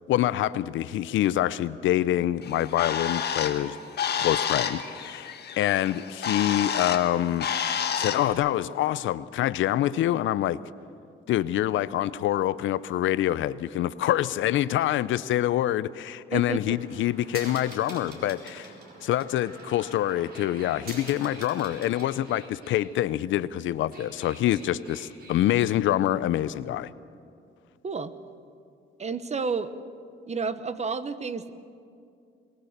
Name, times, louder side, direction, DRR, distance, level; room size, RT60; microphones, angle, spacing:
voice 1, 0.1-3.8 4.2-7.5 8.0-10.6 11.3-18.7 19.0-26.9, left 13 dB, 80° left, 17 dB, 0.6 m, -26 dB
Bird, 2.4-8.3, left 7 dB, 55° left, 1.5 m, -30 dB
voice 2, 16.3-16.8 27.8-28.1 29.0-29.7 30.3-31.5, right 5 dB, 35° right, 12 dB, 1.0 m, -30 dB
sound 1, 16.7-22.8 23.7-25.7, right 2 dB, 50° right, 4.5 m, -45 dB
22.5 x 18.5 x 6.7 m, 2.4 s
cardioid pair, 90°, 20 cm